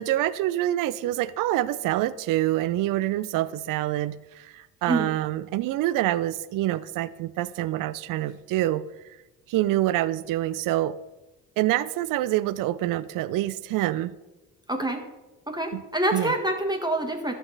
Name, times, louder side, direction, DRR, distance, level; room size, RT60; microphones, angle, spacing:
voice 1, 0.0-8.8 9.5-11.0 11.6-14.2 15.7-15.8 16.1-16.3, right 14 dB, 55° right, 18 dB, 0.5 m, -26 dB
voice 2, 14.7-15.0 15.5-17.3, right 1 dB, 10° right, 4 dB, 1.7 m, -26 dB
12.5 x 7.0 x 4.0 m, 1.1 s
hypercardioid pair, 45°, 40 cm